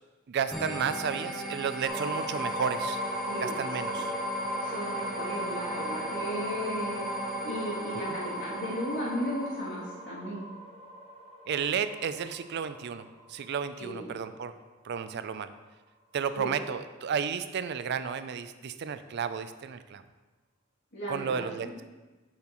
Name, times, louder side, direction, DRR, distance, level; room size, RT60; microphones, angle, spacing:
voice 1, 0.3-3.0 3.4-4.1 8.1-8.2 11.5-14.5 14.8-15.5 16.1-20.0 21.1-21.7, right 7 dB, 55° right, 12 dB, 0.4 m, -32 dB
sound 1, 0.5-9.9, right 1 dB, ahead, 1.2 m, -39 dB
sound 2, 1.8-13.6, equal, 30° right, 1.3 m, -36 dB
voice 2, 4.6-7.1 7.4-10.4 13.8-14.1 16.3-16.5 20.9-21.7, equal, 60° left, -8 dB, 2.7 m, -35 dB
7.6 x 7.4 x 3.0 m, 1.2 s
head